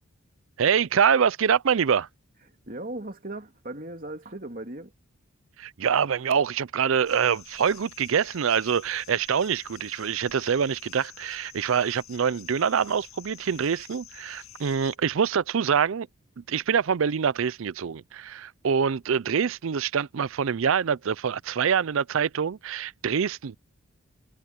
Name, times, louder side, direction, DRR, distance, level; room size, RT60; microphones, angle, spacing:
voice 1, 0.6-2.1 5.6-16.1 16.4-23.6, right 7 dB, 70° right, 0.4 m, -25 dB
voice 2, 2.7-4.9, right 2 dB, 40° right, 2.8 m, -37 dB
sound 1, 7.1-15.0, left 12 dB, 85° left, 7.4 m, -49 dB
head